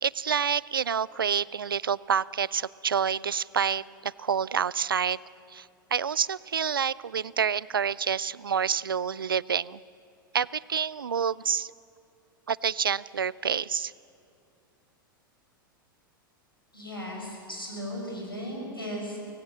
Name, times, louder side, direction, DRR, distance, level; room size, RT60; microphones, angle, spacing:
voice 1, 0.0-5.2 5.5-9.8 10.3-11.7 12.5-13.9, right 7 dB, 75° right, 22 dB, 0.4 m, -28 dB
voice 2, 16.7-19.2, equal, 90° left, -2 dB, 6.5 m, -36 dB
25.0 x 18.0 x 7.6 m, 2.6 s
figure-of-eight pair, 90°, 12 cm